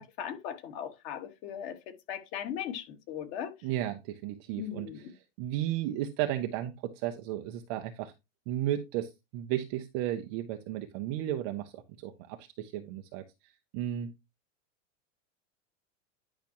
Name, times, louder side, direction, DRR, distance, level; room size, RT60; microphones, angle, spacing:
voice 1, 0.0-3.5 4.6-5.1, left 9 dB, 40° left, 1.6 m, -38 dB
voice 2, 3.6-5.1 5.4-8.1 8.5-14.1, right 12 dB, 20° right, 0.3 m, -34 dB
10.5 x 5.7 x 2.9 m
supercardioid pair, 160°, 38 cm